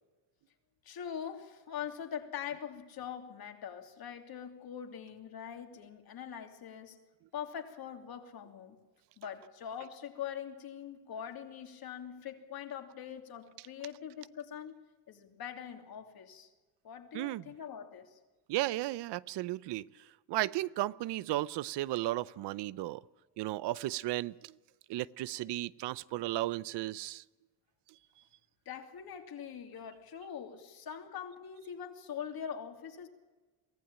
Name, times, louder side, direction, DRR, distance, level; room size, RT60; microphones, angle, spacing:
voice 1, 0.8-7.0 7.3-8.8 9.2-14.8 15.1-16.5 16.8-18.2 28.6-33.1, left 8 dB, 60° left, 3.0 m, -43 dB
voice 2, 18.5-19.8 20.3-23.0 23.4-24.3 24.9-27.2, right 16 dB, 80° right, 0.7 m, -34 dB
23.5 x 15.5 x 8.8 m
cardioid pair, 100°, 41 cm